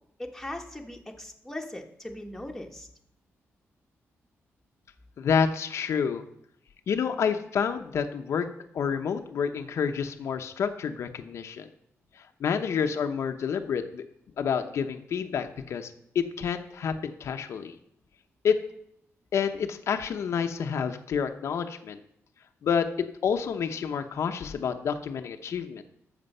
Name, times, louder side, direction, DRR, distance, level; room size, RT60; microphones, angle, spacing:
voice 1, 0.2-2.9, left 1 dB, 5° left, 1 dB, 1.3 m, -39 dB
voice 2, 5.2-6.2 6.9-8.5 8.7-11.7 12.2-14.0 14.4-17.8 18.4-18.6 19.3-22.0 22.6-22.9 23.2-25.8, left 7 dB, 65° left, 6 dB, 0.8 m, -28 dB
13.0 x 6.9 x 5.5 m, 0.73 s
wide cardioid pair, 135°, 5 cm